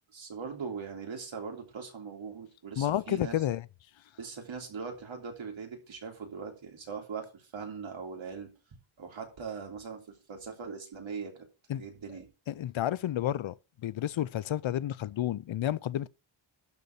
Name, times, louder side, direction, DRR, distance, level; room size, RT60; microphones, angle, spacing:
voice 1, 0.1-3.3 4.2-8.5 9.0-11.4 11.7-12.3, right 5 dB, 65° right, 3.4 m, -40 dB
voice 2, 2.8-3.6 11.7-11.8 12.5-13.5 13.8-16.1, left 12 dB, 70° left, 0.6 m, -30 dB
12.0 x 4.1 x 8.0 m
wide cardioid pair, 120°, 49 cm